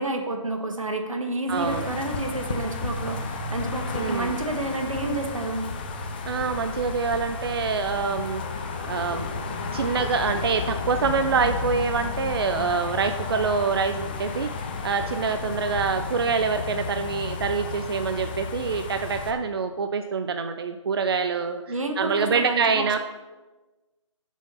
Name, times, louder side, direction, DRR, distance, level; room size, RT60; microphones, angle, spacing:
voice 1, 0.0-5.6 21.7-23.0, right 2 dB, 90° right, 4 dB, 1.5 m, -30 dB
sound 1, 1.5-19.3, left 4 dB, 20° left, 0.5 m, -33 dB
voice 2, 1.5-1.9 3.9-4.4 6.3-8.4 8.8-9.3 9.7-14.5 14.8-21.6 22.0-23.0, right 5 dB, 50° right, 8 dB, 0.5 m, -25 dB
sound 2, 2.1-10.4 10.7-12.4 12.7-15.9, left 3 dB, 45° left, 1.0 m, -39 dB
6.8 x 6.3 x 5.5 m, 1.2 s
figure-of-eight pair, 160°, 17 cm